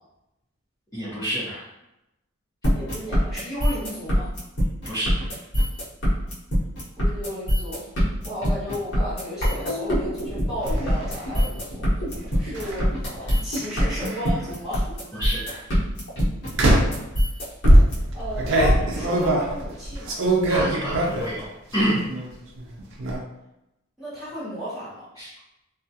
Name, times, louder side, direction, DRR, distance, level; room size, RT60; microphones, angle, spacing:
voice 1, 0.9-1.6 4.8-5.4 15.1-15.6 20.5-21.4 21.7-22.0 25.2-25.3, equal, 15° left, -13 dB, 0.7 m, -28 dB
sound 1, 2.6-17.9, equal, 55° left, 1.0 m, -23 dB
voice 2, 2.7-4.3 6.9-7.9 8.2-11.8 12.4-15.0 18.1-20.2 24.0-25.1, equal, ahead, -12 dB, 1.2 m, -34 dB
sound 2, 10.3-10.8 12.6-12.8 13.6-14.4 15.1-15.4 16.5-17.0 17.6-21.4 21.8-22.3 22.6-23.2, right 1 dB, 60° right, 0.5 m, -21 dB
2.3 x 2.3 x 2.7 m, 0.90 s
head